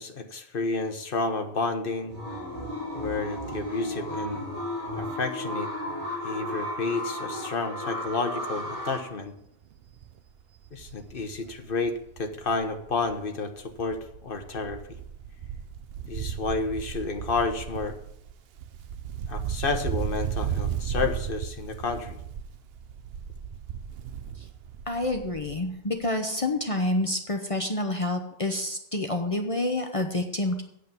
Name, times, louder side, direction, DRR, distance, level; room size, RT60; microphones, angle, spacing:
voice 1, 0.0-2.1 2.9-4.4 5.0-5.7 6.2-9.3 10.7-14.8 16.0-17.9 19.3-22.2, left 3 dB, 60° left, 6 dB, 1.3 m, -30 dB
sound 1, 2.1-9.0, left 1 dB, 55° right, 3.1 m, -34 dB
Wind, 8.7-9.0 9.4-9.5 9.7-13.3 13.6-25.8 26.0-26.1, right 8 dB, 75° right, 0.8 m, -35 dB
voice 2, 24.9-30.6, left 1 dB, 35° left, 4 dB, 1.0 m, -28 dB
8.4 x 7.7 x 6.8 m, 0.75 s
omnidirectional pair, 1.0 m